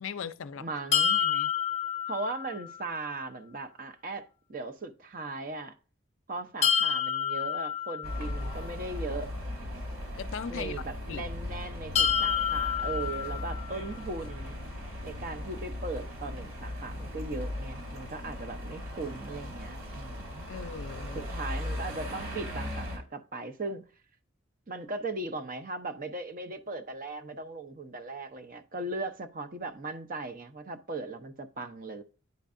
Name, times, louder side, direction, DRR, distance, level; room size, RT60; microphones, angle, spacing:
voice 1, 0.0-0.7 1.2-1.5 10.2-10.8 11.1-11.3 20.5-21.2, left 6 dB, 65° left, 0.5 m, -38 dB
voice 2, 0.6-1.2 2.1-5.8 6.3-9.3 10.5-14.6 15.0-20.5 21.1-23.8 24.7-32.0, right 2 dB, 40° right, 0.7 m, -38 dB
sound 1, 0.9-2.9 6.6-8.7 12.0-14.0, left 9 dB, 30° left, 0.7 m, -29 dB
sound 2, 8.0-23.0, left 1 dB, 80° right, 3.0 m, -38 dB
9.5 x 4.5 x 2.5 m
head